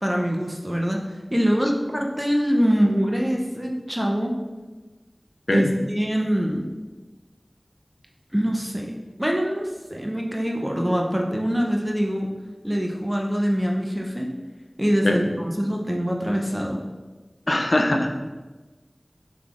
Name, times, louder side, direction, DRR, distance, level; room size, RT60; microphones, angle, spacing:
voice 1, 0.0-1.0 1.3-4.3 5.5-6.6 8.3-8.9 9.2-12.3 12.6-14.3 14.8-16.8, equal, 10° right, 0 dB, 0.6 m, -24 dB
voice 2, 17.5-18.2, left 1 dB, 75° left, 3 dB, 0.4 m, -21 dB
5.5 x 3.3 x 2.5 m, 1.2 s
wide cardioid pair, 45°, 0 cm